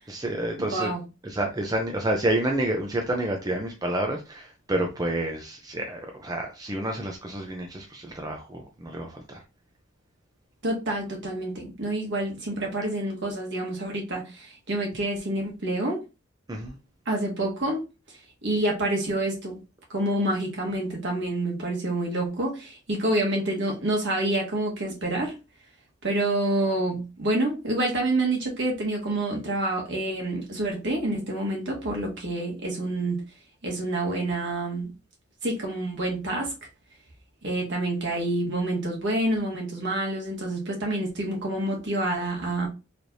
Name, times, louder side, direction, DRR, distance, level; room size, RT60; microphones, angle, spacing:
voice 1, 0.1-0.9 1.2-9.4 16.5-16.8, right 1 dB, 20° right, 0.6 m, -29 dB
voice 2, 0.6-1.0 10.6-16.0 17.0-17.8 18.4-19.6 19.9-25.3 26.0-33.2 33.6-34.9 35.4-36.5 37.4-42.7, right 1 dB, 60° right, 1.5 m, -27 dB
4.6 x 3.3 x 2.6 m
head